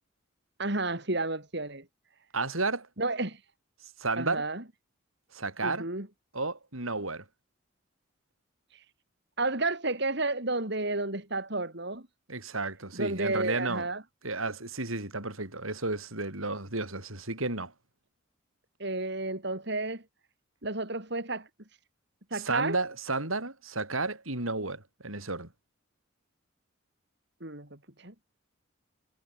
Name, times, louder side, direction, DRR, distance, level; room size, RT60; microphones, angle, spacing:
voice 1, 0.6-1.8 3.0-3.4 4.2-4.6 5.6-6.1 8.7-8.8 9.4-12.0 12.9-14.0 18.8-20.0 20.6-21.5 22.3-22.8 27.4-27.7 28.0-28.1, right 2 dB, 55° right, 3.8 m, -31 dB
voice 2, 2.3-2.9 4.0-4.5 5.3-5.9 6.3-7.2 12.3-13.9 14.2-17.7 22.3-25.5, right 3 dB, 85° right, 7.4 m, -32 dB
head